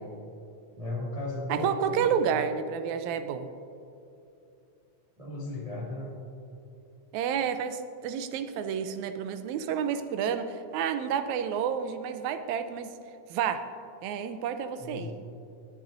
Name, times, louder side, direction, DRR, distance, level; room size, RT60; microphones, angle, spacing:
voice 1, 0.7-2.1 5.2-6.1 14.8-15.2, left 2 dB, 25° right, -5 dB, 0.7 m, -35 dB
voice 2, 1.5-3.5 7.1-12.9 13.3-13.6 14.0-15.1, right 7 dB, 85° right, 9 dB, 1.9 m, -30 dB
19.5 x 9.1 x 2.6 m, 2.7 s
omnidirectional pair, 3.3 m